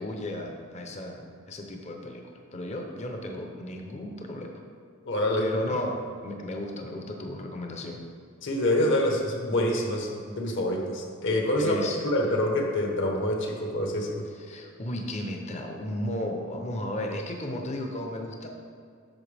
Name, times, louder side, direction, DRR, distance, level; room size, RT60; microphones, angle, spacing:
voice 1, 0.0-4.5 5.4-8.0 11.6-12.0 14.5-18.5, left 1 dB, 30° left, 2 dB, 0.7 m, -34 dB
voice 2, 5.0-5.5 8.4-14.2, left 1 dB, 60° left, 1 dB, 1.2 m, -26 dB
9.0 x 6.7 x 3.4 m, 2.2 s
head